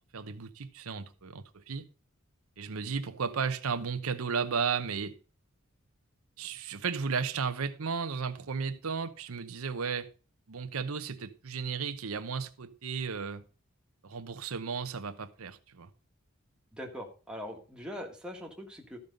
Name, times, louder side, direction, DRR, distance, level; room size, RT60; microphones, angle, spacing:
voice 1, 0.1-1.9 2.6-5.1 6.4-10.1 10.5-13.4 14.0-15.9, right 5 dB, 90° right, 0.8 m, -34 dB
voice 2, 16.7-19.0, equal, 5° right, 1.6 m, -42 dB
13.5 x 5.4 x 5.2 m
head